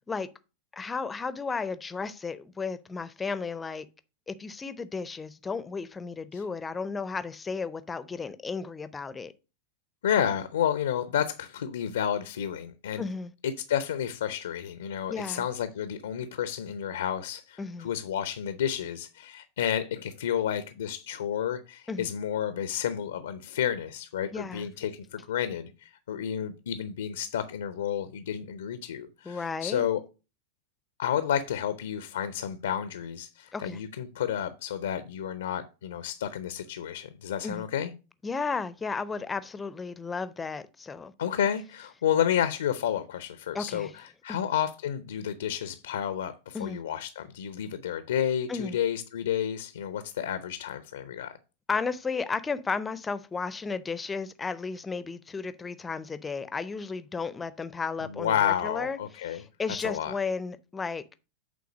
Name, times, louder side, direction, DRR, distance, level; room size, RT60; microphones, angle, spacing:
voice 1, 0.7-3.9 4.3-9.3 13.0-13.3 15.1-15.5 17.6-17.9 21.9-22.1 24.3-24.7 29.3-29.8 33.5-33.8 37.4-37.7 38.2-41.1 43.5-43.9 44.3-44.4 46.5-46.8 48.5-48.8 51.7-59.0 59.3-61.0, left 4 dB, 15° left, 0.6 m, -34 dB
voice 2, 10.0-13.0 13.4-30.0 31.0-37.9 41.2-51.4 58.0-59.4 59.8-60.1, left 9 dB, 65° left, 0.6 m, -31 dB
8.4 x 3.8 x 5.0 m
figure-of-eight pair, 90°, 0 cm